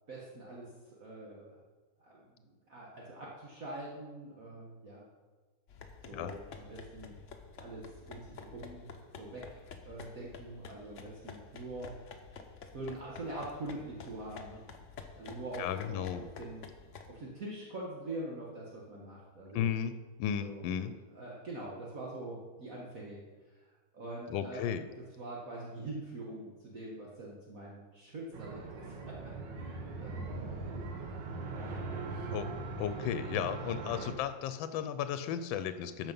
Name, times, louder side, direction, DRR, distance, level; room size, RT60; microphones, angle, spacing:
voice 1, 0.1-0.7 1.0-1.6 2.0-2.4 2.7-5.1 6.0-7.2 7.6-8.8 9.2-11.9 12.7-14.6 15.2-16.6 17.1-19.7 20.4-23.2 23.6-23.7 23.9-24.6 25.2-30.5 31.5-31.7 32.1-32.2, right 2 dB, 50° right, -5 dB, 1.8 m, -44 dB
sound 1, 5.7-17.1, left 5 dB, 50° left, 0.9 m, -50 dB
voice 2, 15.6-16.2 19.5-19.9 20.2-20.9 24.3-24.8 32.3-32.5 32.8-36.1, left 9 dB, 85° left, 11 dB, 1.3 m, -34 dB
sound 2, 28.3-34.1, right 3 dB, 70° right, 1.8 m, -40 dB
13.5 x 5.5 x 5.4 m, 1.4 s
omnidirectional pair, 2.1 m